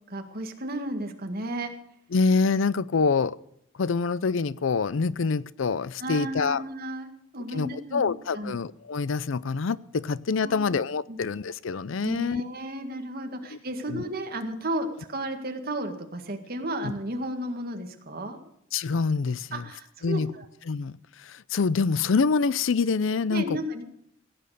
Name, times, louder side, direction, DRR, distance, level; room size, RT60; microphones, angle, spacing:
voice 1, 0.1-1.7 6.0-8.6 10.4-10.7 11.1-11.2 12.0-18.4 19.5-20.5 23.3-23.8, right 1 dB, 50° right, 5 dB, 1.9 m, -33 dB
voice 2, 2.1-3.4 3.8-6.6 7.5-12.4 13.5-13.6 13.9-14.0 16.8-16.9 18.7-19.6 20.0-20.3 20.7-23.4, left 4 dB, 75° left, 19 dB, 0.5 m, -26 dB
16.5 x 9.0 x 6.6 m, 0.72 s
head